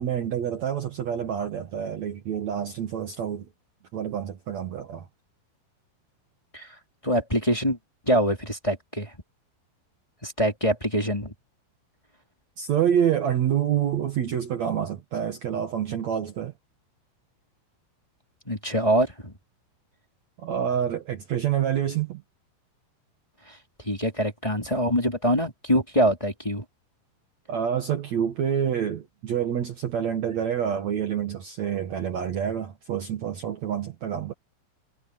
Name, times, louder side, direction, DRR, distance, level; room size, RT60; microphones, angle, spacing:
voice 1, 0.0-3.5 3.9-5.0 12.6-16.5 20.4-22.2 27.5-34.3, right 9 dB, 80° right, 1.5 m, -27 dB
voice 2, 7.0-7.8 8.0-9.1 10.2-11.3 18.4-19.4 23.5-23.6 23.8-26.6, equal, 10° left, 3.1 m, -24 dB
omnidirectional pair, 5.5 m